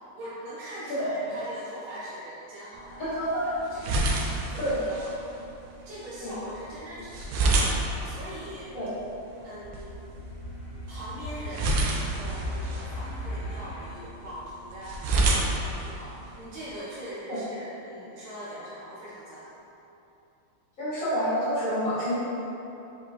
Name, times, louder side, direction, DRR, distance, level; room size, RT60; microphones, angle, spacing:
voice 1, 0.1-3.1 3.4-5.0 5.8-8.8 9.4-10.0 10.9-19.5, right 1 dB, 55° right, -10 dB, 0.6 m, -42 dB
voice 2, 0.9-1.3 3.0-3.4 4.6-4.8 6.2-6.3 8.7-8.9 17.3-17.4 20.8-22.1, equal, 40° left, -11 dB, 1.8 m, -28 dB
sound 1, 2.8-16.7, right 2 dB, 75° right, 1.1 m, -31 dB
sound 2, 9.6-13.9, left 1 dB, 75° left, 1.5 m, -37 dB
4.3 x 4.3 x 2.6 m, 2.9 s
omnidirectional pair, 2.4 m